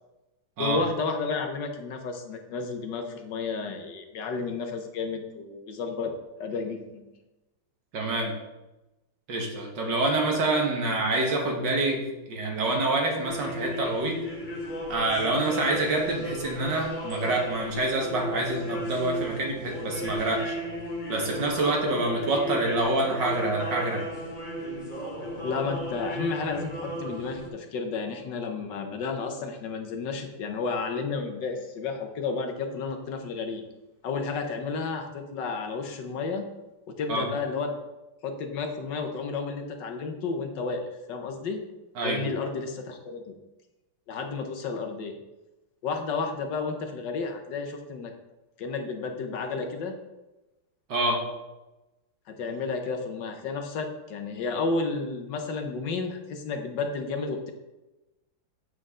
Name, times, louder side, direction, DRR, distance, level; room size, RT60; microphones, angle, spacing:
voice 1, 0.6-7.2 25.4-33.6 34.0-36.5 36.9-37.7 38.2-41.7 42.0-43.4 44.1-45.2 45.8-48.1 48.6-50.0 52.3-57.5, left 4 dB, 70° left, 5 dB, 1.6 m, -32 dB
voice 2, 7.9-8.4 9.3-14.2 14.9-20.6 21.1-24.1 37.1-37.3 42.0-42.2 50.9-51.3, right 2 dB, 70° right, 0 dB, 2.2 m, -27 dB
sound 1, 13.2-27.5, equal, 30° left, 1.2 m, -35 dB
7.7 x 7.7 x 3.7 m, 1.0 s
omnidirectional pair, 2.0 m